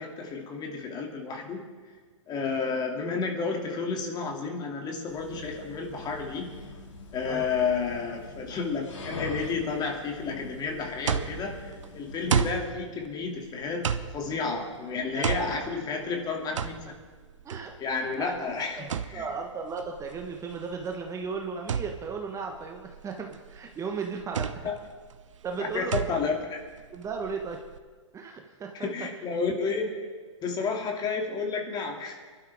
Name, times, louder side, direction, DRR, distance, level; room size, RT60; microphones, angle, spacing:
voice 1, 0.0-1.7 2.3-6.6 7.1-17.0 17.8-19.3 24.6-24.8 25.5-26.6 28.7-29.9 30.4-32.2, left 4 dB, 25° left, 2 dB, 2.7 m, -31 dB
sound 1, 5.1-12.4, left 2 dB, 70° left, 3.5 m, -42 dB
sound 2, 10.5-27.8, right 7 dB, 75° right, 0.9 m, -34 dB
voice 2, 15.1-15.5 17.4-18.4 18.8-24.7 25.4-26.2 26.9-27.6 28.1-28.7, right 5 dB, 20° right, 3 dB, 1.3 m, -36 dB
24.5 x 12.0 x 3.6 m, 1.5 s
hypercardioid pair, 115°, 16 cm